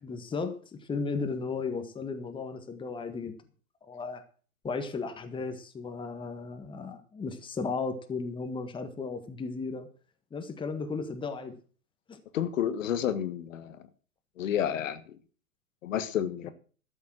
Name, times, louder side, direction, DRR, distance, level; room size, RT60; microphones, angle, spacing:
voice 1, 0.0-3.3 3.8-4.2 4.6-9.9 10.3-11.6 12.1-12.2 16.4-16.5, left 4 dB, 10° left, 1.6 m, -35 dB
voice 2, 12.3-13.8 14.4-15.2 15.8-16.5, left 10 dB, 60° left, 1.4 m, -30 dB
13.0 x 7.4 x 7.6 m
hypercardioid pair, 120°, 43 cm